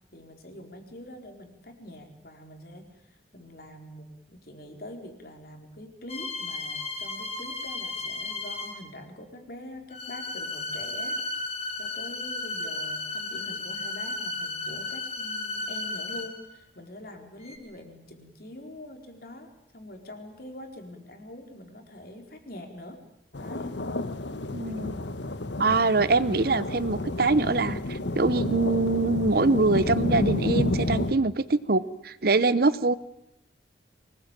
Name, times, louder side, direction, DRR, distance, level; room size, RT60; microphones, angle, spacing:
voice 1, 0.1-11.2 11.8-23.0 23.4-23.8, left 1 dB, 55° left, 4 dB, 4.3 m, -44 dB
sound 1, 6.1-8.9 9.9-16.5 17.4-17.6, left 3 dB, 35° left, 5.3 m, -34 dB
sound 2, 23.3-31.1, left 1 dB, 80° left, 1.4 m, -30 dB
voice 2, 24.5-25.0 25.6-32.9, right 3 dB, 55° right, 16 dB, 0.9 m, -24 dB
24.5 x 20.0 x 9.0 m, 0.78 s
head